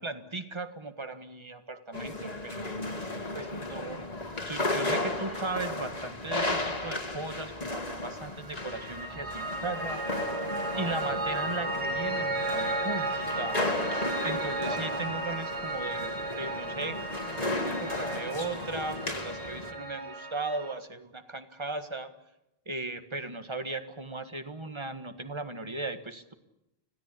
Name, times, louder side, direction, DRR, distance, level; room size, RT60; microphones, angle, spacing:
voice 1, 0.0-2.8 3.3-4.1 4.4-10.0 10.8-13.6 14.2-17.0 17.4-22.1 22.6-26.3, right 2 dB, 25° right, 9 dB, 1.7 m, -37 dB
sound 1, 1.9-19.7, left 2 dB, 40° left, 2.0 m, -35 dB
Piano, 8.4-20.7, right 2 dB, 80° right, 2.7 m, -34 dB
25.5 x 17.0 x 8.5 m, 0.89 s
omnidirectional pair, 1.1 m